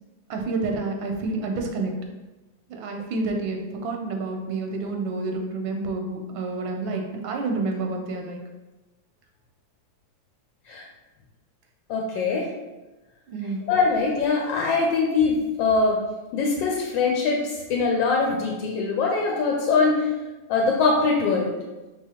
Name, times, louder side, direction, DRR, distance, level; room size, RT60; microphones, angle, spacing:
voice 1, 0.3-1.9 2.7-8.4 13.3-13.6, right 3 dB, 90° right, 3 dB, 1.5 m, -29 dB
voice 2, 11.9-12.5 13.7-16.0 16.3-20.1 20.5-21.6, left 4 dB, 80° left, 0 dB, 1.3 m, -22 dB
4.9 x 3.6 x 2.9 m, 1.1 s
omnidirectional pair, 2.1 m